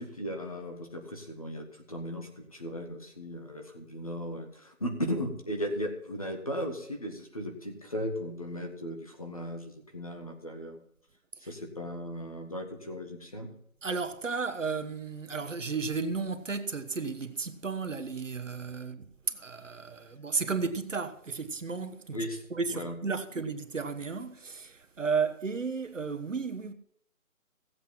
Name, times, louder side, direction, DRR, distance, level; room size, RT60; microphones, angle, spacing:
voice 1, 0.0-10.8 11.5-13.5 22.1-22.4 22.7-23.0, equal, 25° left, 1.4 m, -36 dB
voice 2, 13.8-26.7, right 4 dB, 60° right, 1.3 m, -33 dB
17.0 x 8.1 x 5.8 m
hypercardioid pair, 180°, 43 cm